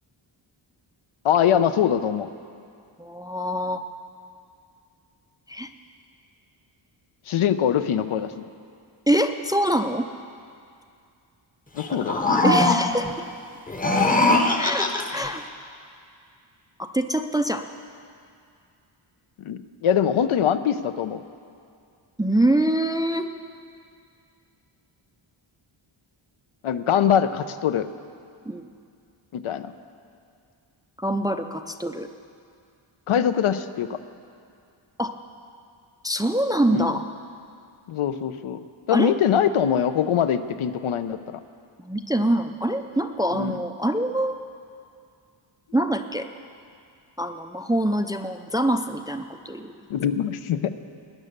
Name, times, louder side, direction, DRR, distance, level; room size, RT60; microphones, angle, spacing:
voice 1, 1.2-2.3 7.3-8.5 11.7-12.2 19.4-21.2 26.6-27.9 29.3-29.7 33.1-34.0 36.7-36.9 37.9-38.6 38.9-41.4 43.3-43.6 49.9-50.7, left 9 dB, 80° left, 11 dB, 0.8 m, -23 dB
voice 2, 3.0-3.8 5.5-5.7 9.1-10.1 12.4-13.1 14.6-15.4 16.8-17.6 22.2-23.3 28.5-28.7 31.0-32.1 35.0-35.1 36.0-37.0 38.9-39.1 41.8-44.4 45.7-46.3 47.2-49.7, right 1 dB, 10° right, 7 dB, 0.3 m, -24 dB
sound 1, 11.8-13.1 13.7-15.3, left 2 dB, 15° left, 0.8 m, -21 dB
19.0 x 9.9 x 6.7 m, 2.4 s
wide cardioid pair, 160°, 49 cm